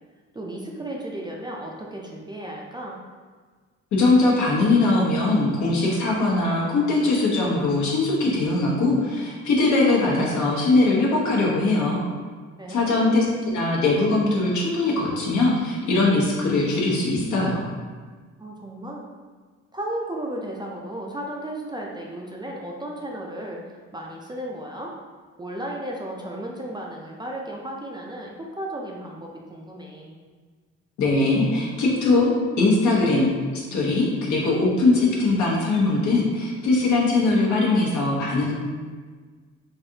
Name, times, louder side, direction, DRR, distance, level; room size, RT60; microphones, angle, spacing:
voice 1, 0.3-3.0 12.6-13.0 18.4-19.1 19.7-24.9 25.4-30.2, right 1 dB, 15° right, -2 dB, 0.3 m, -34 dB
voice 2, 3.9-12.0 12.7-17.6 31.0-32.3 32.6-33.3 33.7-38.5, left 2 dB, 70° left, -4 dB, 0.9 m, -21 dB
3.2 x 2.5 x 2.7 m, 1.5 s
cardioid pair, 90°, 30 cm